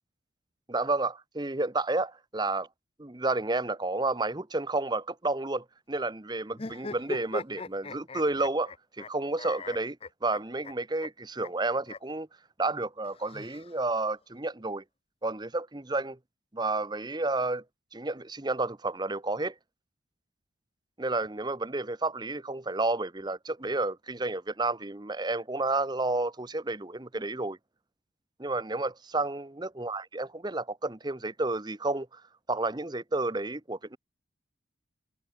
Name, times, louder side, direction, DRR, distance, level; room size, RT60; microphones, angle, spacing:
voice 1, 0.7-2.7 3.0-8.7 9.0-10.0 10.2-12.3 12.6-14.8 15.2-16.2 16.5-17.6 17.9-19.5 21.0-27.6 28.4-32.2 32.5-34.0, right 2 dB, 20° right, 0.9 m, -31 dB
sound 1, 6.5-9.1 9.4-10.7 11.0-11.1 11.4-11.5 11.9-12.0 13.0-14.0, left 3 dB, 30° left, 0.7 m, -40 dB
head